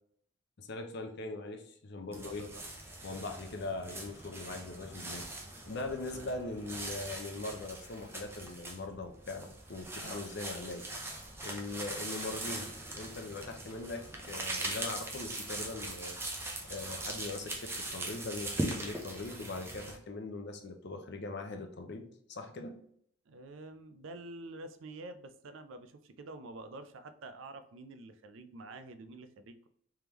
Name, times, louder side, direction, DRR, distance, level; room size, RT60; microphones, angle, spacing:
voice 1, 0.6-2.5 3.0-5.3 5.6-10.9 11.4-16.2 16.7-22.8, left 2 dB, 55° left, 5 dB, 0.6 m, -41 dB
voice 2, 2.0-2.6 6.1-6.3 10.0-10.3 23.3-29.7, right 2 dB, 65° right, 10 dB, 0.4 m, -48 dB
sound 1, 2.1-20.0, right 1 dB, 10° right, 0.6 m, -41 dB
3.5 x 3.4 x 2.9 m, 0.66 s
head